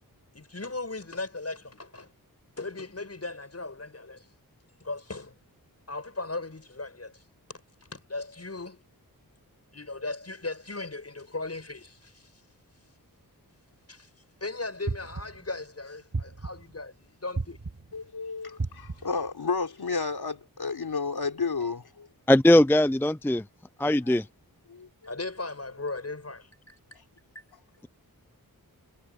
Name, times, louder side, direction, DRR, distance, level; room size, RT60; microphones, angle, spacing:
voice 1, 0.3-2.1 2.6-4.2 4.8-5.3 5.9-7.2 7.5-7.6 7.9-8.8 9.7-12.3 13.9-14.1 14.4-17.6 25.0-27.0 27.3-27.4, left 3 dB, 40° left, 7.6 m, -37 dB
sound 1, 14.9-15.5 16.1-16.8 17.4-18.0 18.6-19.2, right 3 dB, 50° right, 7.5 m, -34 dB
voice 2, 17.9-22.1 23.8-24.2 24.7-25.2, left 4 dB, 80° left, 3.9 m, -32 dB
voice 3, 22.3-23.4 23.8-24.2, left 1 dB, 5° left, 0.5 m, -20 dB
wide cardioid pair, 70°, 37 cm